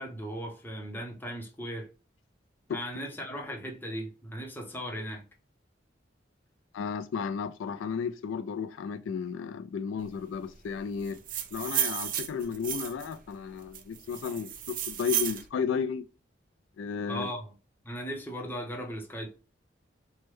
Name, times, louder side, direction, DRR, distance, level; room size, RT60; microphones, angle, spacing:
voice 1, 0.0-1.9 2.7-5.2 17.1-17.5 17.8-19.3, equal, 10° left, 0.7 m, -37 dB
voice 2, 6.7-11.2 11.5-16.0 16.8-17.3, left 6 dB, 85° left, 0.3 m, -33 dB
sound 1, 11.1-13.1 13.7-15.4, right 10 dB, 45° right, 0.4 m, -32 dB
3.2 x 2.1 x 3.1 m
head